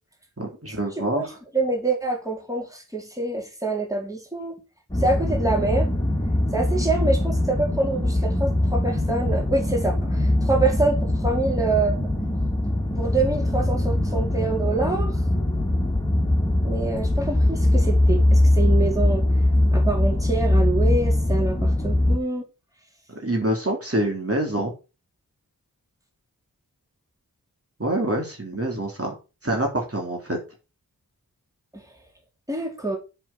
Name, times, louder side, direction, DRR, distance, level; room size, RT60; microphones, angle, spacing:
voice 1, 0.4-1.4 23.2-24.7 27.8-29.1 29.4-30.4, right 1 dB, 40° right, 3.4 m, -26 dB
voice 2, 1.1-4.6 5.0-5.9 6.5-11.9 13.0-15.2 16.6-19.2 19.7-22.4 31.7-31.8 32.5-33.0, right 3 dB, 10° right, 4.4 m, -26 dB
sound 1, 4.9-22.2, left 1 dB, 10° left, 3.0 m, -22 dB
7.8 x 7.2 x 6.1 m
wide cardioid pair, 70°, 35 cm